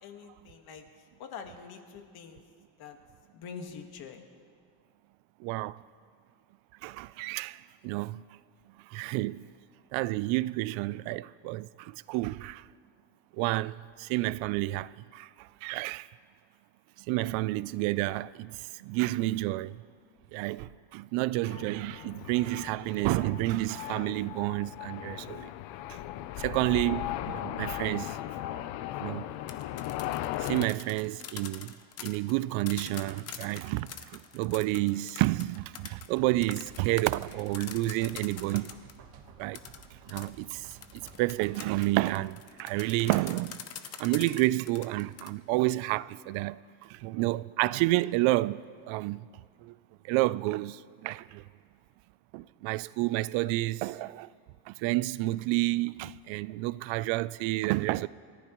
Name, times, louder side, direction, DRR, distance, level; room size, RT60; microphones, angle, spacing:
voice 1, 0.0-2.4 2.8-3.0 3.3-4.2, left 6 dB, 50° left, 1.6 m, -45 dB
voice 2, 5.4-5.8 6.8-8.2 8.9-9.4 9.9-12.6 13.4-16.1 17.1-19.8 20.3-25.5 25.9-26.0 26.4-28.2 29.0-29.3 30.4-38.7 39.4-39.6 40.1-40.7 41.2-43.6 44.0-49.2 49.6-49.7 50.0-51.4 52.3-54.3 54.7-58.1, right 18 dB, 75° right, 0.5 m, -30 dB
sound 1, 21.5-30.7, left 13 dB, 65° left, 0.7 m, -37 dB
sound 2, 29.3-39.0 39.5-45.3, left 8 dB, 30° left, 0.7 m, -44 dB
sound 3, 36.3-42.3, right 6 dB, 55° right, 1.5 m, -53 dB
29.0 x 14.5 x 3.1 m
cardioid pair, 155°, 47 cm